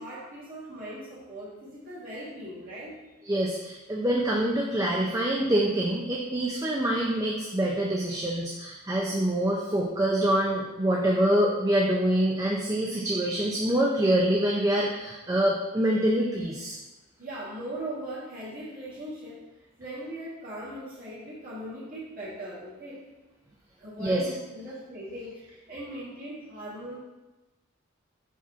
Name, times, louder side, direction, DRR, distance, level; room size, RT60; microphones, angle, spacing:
voice 1, 0.0-3.1 17.2-19.5 19.8-23.0 23.8-27.0, right 1 dB, 40° right, -8 dB, 1.8 m, -39 dB
voice 2, 3.3-16.8 24.0-24.3, right 1 dB, 15° right, -1 dB, 0.5 m, -25 dB
4.8 x 4.2 x 5.7 m, 1.1 s
head